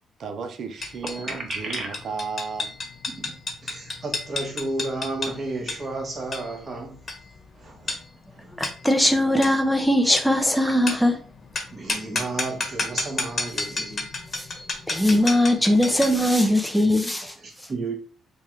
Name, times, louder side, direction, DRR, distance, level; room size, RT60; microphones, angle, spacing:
voice 1, 0.2-2.7, right 5 dB, 60° right, 0.6 m, -34 dB
sound 1, 0.8-16.3, left 3 dB, 40° left, 1.2 m, -32 dB
voice 2, 1.2-2.0 3.1-3.3 3.6-7.0 7.5-8.0 8.3-8.6 10.6-10.7 11.7-14.1 17.3-17.9, right 2 dB, 40° right, 1.3 m, -33 dB
voice 3, 8.6-11.1 14.3-14.4 14.9-17.3, left 1 dB, ahead, 0.6 m, -20 dB
3.4 x 2.4 x 4.4 m
cardioid pair, 90°, 0 cm